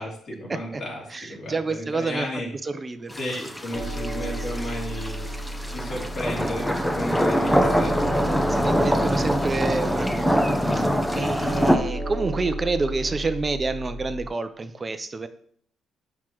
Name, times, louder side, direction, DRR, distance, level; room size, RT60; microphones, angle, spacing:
voice 1, 0.0-2.5 3.2-5.3 5.7-8.0 11.1-11.4, left 1 dB, 55° left, -3 dB, 2.9 m, -33 dB
voice 2, 1.1-2.3 2.6-3.2 8.5-15.3, right 3 dB, 30° right, 10 dB, 0.6 m, -28 dB
sound 1, 3.1-11.8, equal, 5° left, 0.8 m, -24 dB
sound 2, 3.7-14.3, right 1 dB, 35° left, 1.3 m, -33 dB
8.2 x 6.0 x 3.0 m, 0.62 s
cardioid pair, 90°, 0 cm